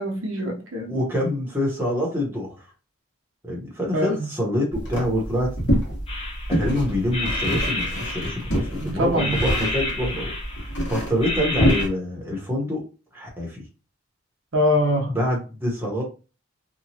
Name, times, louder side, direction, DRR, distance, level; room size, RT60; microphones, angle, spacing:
voice 1, 0.0-1.0 3.9-4.2 8.8-9.4 14.5-15.1, left 1 dB, 65° right, 0.8 m, -23 dB
voice 2, 0.9-2.7 3.4-5.5 6.5-12.8 13.1-13.6 15.1-16.0, left 1 dB, 10° right, 0.8 m, -26 dB
sound 1, 4.7-11.9, equal, 55° left, 1.3 m, -26 dB
sound 2, 6.1-6.7 7.1-8.8 9.2-10.8 11.2-11.8, left 2 dB, 25° left, 0.5 m, -30 dB
2.9 x 2.2 x 2.8 m
head